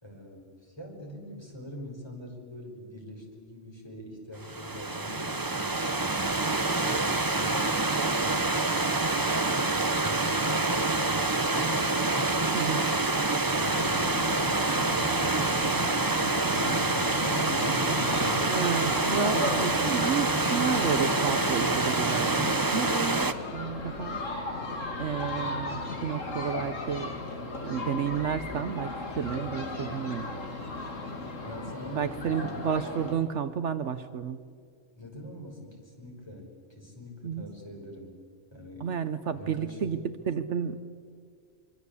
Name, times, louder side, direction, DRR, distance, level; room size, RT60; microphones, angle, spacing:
voice 1, 0.0-7.7 7.9-8.7 9.2-11.8 13.5-14.2 15.4-15.9 16.4-18.6 31.4-32.6 35.0-38.2 38.5-38.9 39.3-40.0, left 1 dB, 20° left, 0 dB, 5.6 m, -44 dB
Stream / Liquid, 4.4-23.3, right 2 dB, 20° right, 0.9 m, -27 dB
voice 2, 12.5-12.9 18.5-24.3 25.0-27.1 27.6-30.3 31.9-34.4 37.2-37.5 38.8-40.8, right 7 dB, 70° right, 11 dB, 1.2 m, -31 dB
sound 1, 13.6-33.2, left 2 dB, 85° left, 2.9 m, -36 dB
24.5 x 24.5 x 8.4 m, 2.1 s
omnidirectional pair, 1.3 m